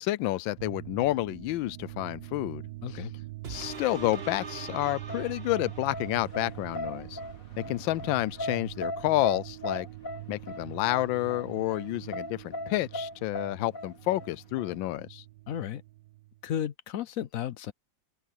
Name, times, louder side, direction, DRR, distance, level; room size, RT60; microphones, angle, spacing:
voice 1, 0.0-2.6 2.9-3.0 3.5-7.2 7.6-9.9 10.3-15.2, left 16 dB, 80° left, 1.3 m, -30 dB
sound 1, 0.6-16.5, right 17 dB, 70° right, 1.3 m, -44 dB
sound 2, 3.4-6.4 6.9-7.0, right 5 dB, 35° right, 1.3 m, -42 dB
sound 3, 5.1-15.0, left 1 dB, 45° left, 3.2 m, -38 dB
voice 2, 15.5-15.8 16.4-17.7, left 10 dB, 65° left, 0.9 m, -33 dB
open air
omnidirectional pair, 2.1 m